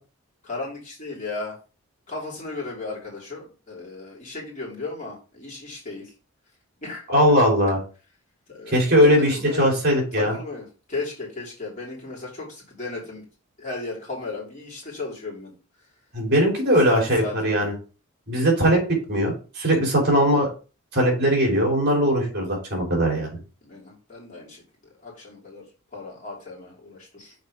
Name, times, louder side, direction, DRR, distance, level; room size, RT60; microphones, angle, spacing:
voice 1, 0.4-1.5 2.1-6.1 6.8-7.4 8.5-8.9 9.3-9.7 10.1-13.2 13.6-15.5 16.8-17.6 23.6-24.6 25.0-25.6 25.9-27.3, left 3 dB, 35° left, -4 dB, 3.1 m, -35 dB
voice 2, 7.1-7.8 8.7-10.3 16.1-17.7 18.3-18.8 19.1-20.5 20.9-23.3, equal, 45° right, -1 dB, 3.4 m, -20 dB
6.5 x 4.3 x 5.0 m, 0.34 s
head